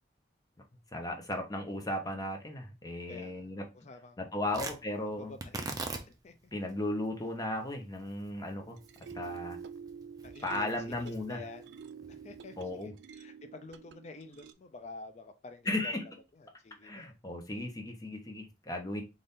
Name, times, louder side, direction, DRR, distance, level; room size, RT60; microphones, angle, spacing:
voice 1, 0.9-3.6 4.2-5.3 6.5-8.8 9.1-9.6 10.4-11.4 12.6-12.9 15.7-16.0 16.8-19.0, left 1 dB, 20° left, 0.8 m, -36 dB
voice 2, 3.1-4.2 4.5-4.6 5.1-5.6 6.1-6.3 10.2-11.7 12.1-16.0 16.3-17.1, left 3 dB, 40° left, 0.4 m, -49 dB
Tearing, 4.5-12.9, right 3 dB, 20° right, 0.5 m, -45 dB
sound 1, 8.6-14.5, right 6 dB, 75° right, 0.3 m, -47 dB
4.1 x 2.5 x 3.6 m
head